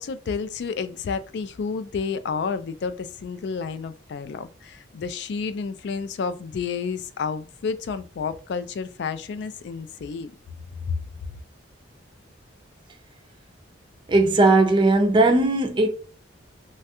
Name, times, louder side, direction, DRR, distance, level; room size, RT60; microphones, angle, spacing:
voice 1, 0.0-10.3 10.9-11.0, left 5 dB, 60° left, 0.3 m, -30 dB
voice 2, 14.1-15.9, right 2 dB, 25° right, 0.4 m, -18 dB
3.1 x 2.3 x 2.8 m
head